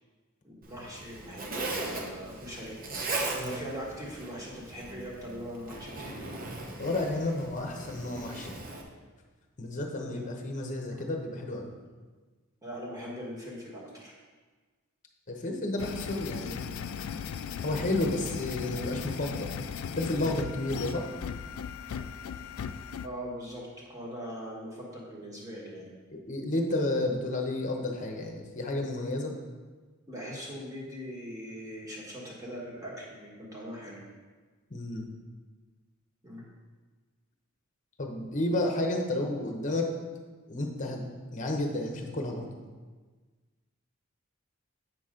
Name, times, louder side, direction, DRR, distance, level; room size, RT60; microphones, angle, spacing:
voice 1, 0.4-2.8 3.3-6.3 10.0-10.3 10.9-11.0 12.6-14.1 23.0-25.9 30.1-34.0 36.2-36.4, equal, 15° right, -5 dB, 1.7 m, -41 dB
Zipper (clothing), 0.6-8.8, right 2 dB, 45° right, 0.9 m, -38 dB
voice 2, 6.8-8.6 9.6-11.7 15.3-16.6 17.6-19.5 19.9-21.1 26.1-29.3 34.7-35.1 38.0-39.9 40.5-41.1 41.3-42.5, left 2 dB, 40° left, 2 dB, 1.0 m, -31 dB
sound 1, 15.8-23.1, left 7 dB, 85° left, 0.3 m, -37 dB
7.9 x 6.1 x 3.8 m, 1.4 s
head